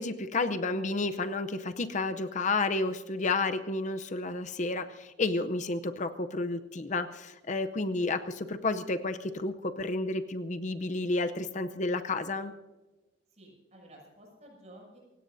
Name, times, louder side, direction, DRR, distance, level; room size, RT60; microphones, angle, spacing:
voice 1, 0.0-12.5, left 3 dB, 40° left, 9 dB, 0.6 m, -31 dB
voice 2, 13.3-15.0, right 1 dB, 35° right, -1 dB, 6.9 m, -53 dB
28.0 x 17.0 x 2.7 m, 1.2 s
head